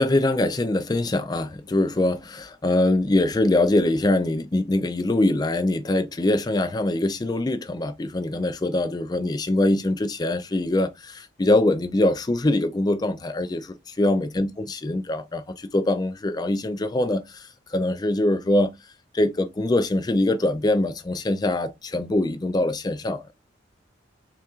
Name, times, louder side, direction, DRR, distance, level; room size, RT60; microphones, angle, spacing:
voice 1, 0.0-18.7 19.1-23.3, left 1 dB, 20° left, 0.4 m, -23 dB
5.6 x 2.4 x 2.4 m
head